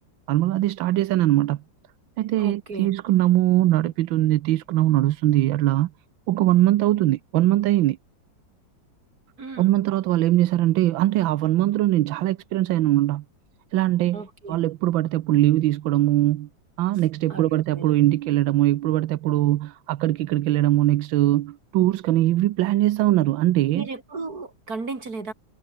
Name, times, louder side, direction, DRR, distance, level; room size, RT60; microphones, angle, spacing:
voice 1, 0.3-1.6 2.2-5.9 6.3-8.0 9.6-13.2 13.7-14.2 14.5-16.5 16.8-23.8, right 15 dB, 85° right, 1.5 m, -21 dB
voice 2, 2.4-2.9 9.4-9.8 14.1-14.6 17.3-17.9 23.7-25.3, right 3 dB, 50° right, 4.2 m, -35 dB
omnidirectional pair, 2.1 m